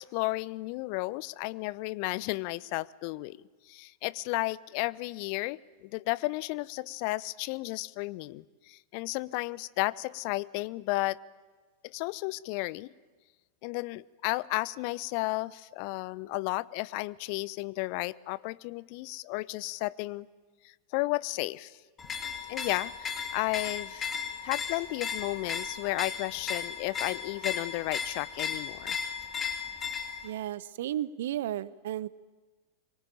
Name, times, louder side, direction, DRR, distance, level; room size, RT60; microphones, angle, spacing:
voice 1, 0.0-11.2 11.8-12.9 13.6-20.3 20.9-21.7 22.5-24.1 24.4-29.0, left 21 dB, 45° left, 19 dB, 0.7 m, -33 dB
sound 1, 22.0-30.3, left 6 dB, 20° left, 3.2 m, -36 dB
voice 2, 30.2-32.1, right 12 dB, 55° right, 20 dB, 0.8 m, -33 dB
25.0 x 23.0 x 9.0 m, 1.3 s
figure-of-eight pair, 90°, 0 cm